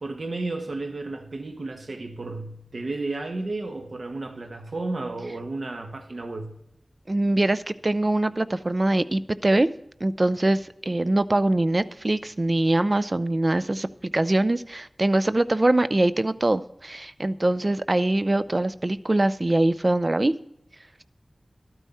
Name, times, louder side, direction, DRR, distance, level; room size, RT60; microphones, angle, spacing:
voice 1, 0.0-6.6, right 2 dB, 75° right, 1.2 m, -33 dB
voice 2, 7.1-9.7 10.0-13.9 14.1-20.3, right 2 dB, 40° right, 0.5 m, -23 dB
12.5 x 9.2 x 4.2 m
wide cardioid pair, 55°, 0 cm